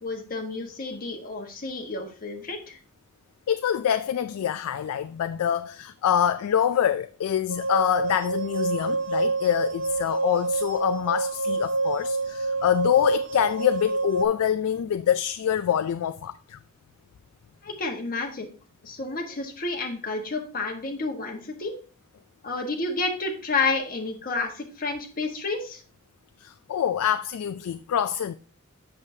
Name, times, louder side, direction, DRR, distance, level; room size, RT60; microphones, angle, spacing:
voice 1, 0.0-2.8 17.6-18.5 18.8-21.7 22.4-25.8, left 3 dB, 45° left, 1.4 m, -30 dB
voice 2, 3.5-16.6 26.4-28.3, left 9 dB, 90° left, 0.3 m, -25 dB
sound 1, 7.5-14.3, right 3 dB, 65° right, 0.7 m, -27 dB
7.2 x 6.5 x 2.7 m
head